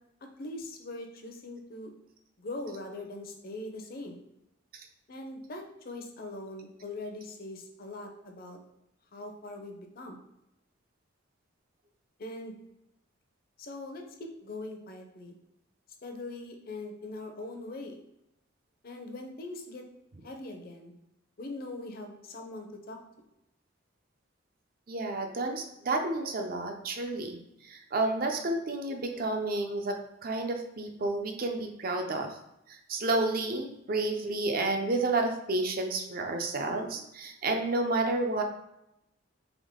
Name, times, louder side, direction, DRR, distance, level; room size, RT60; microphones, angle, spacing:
voice 1, 0.4-1.9 2.4-4.2 5.1-8.6 9.1-10.2 12.2-12.6 13.6-15.4 16.0-18.0 18.8-19.9 20.2-20.9 21.4-23.0, left 2 dB, 50° left, 3 dB, 0.7 m, -41 dB
voice 2, 24.9-32.4 32.7-38.4, right 2 dB, 45° right, 4 dB, 0.5 m, -31 dB
3.6 x 3.4 x 3.7 m, 0.85 s
head